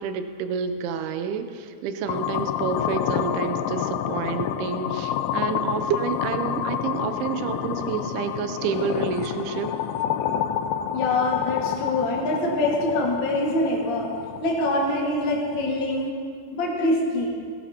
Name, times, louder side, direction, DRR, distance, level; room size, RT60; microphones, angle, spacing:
voice 1, 0.0-9.7, right 6 dB, 80° right, 9 dB, 2.4 m, -29 dB
sound 1, 2.1-16.1, left 10 dB, 90° left, 2.1 m, -29 dB
voice 2, 10.9-14.1 14.4-16.1 16.5-17.3, left 1 dB, 45° left, -3 dB, 1.6 m, -24 dB
19.0 x 13.0 x 2.9 m, 2.2 s
omnidirectional pair, 5.0 m